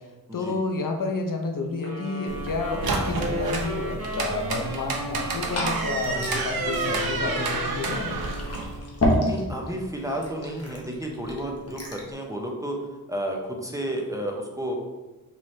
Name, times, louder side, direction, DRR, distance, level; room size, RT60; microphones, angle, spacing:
voice 1, 0.0-8.2, left 3 dB, 60° left, 3 dB, 0.6 m, -30 dB
sound 1, 1.8-9.0, equal, 40° right, 1.0 m, -35 dB
sound 2, 2.3-8.8, right 3 dB, 70° right, 0.7 m, -30 dB
Liquid, 5.1-12.1, left 1 dB, 40° left, 1.0 m, -31 dB
voice 2, 9.2-12.8 13.1-14.8, right 1 dB, 10° right, -1 dB, 0.6 m, -31 dB
4.1 x 3.1 x 3.1 m, 1.2 s
wide cardioid pair, 95°, 37 cm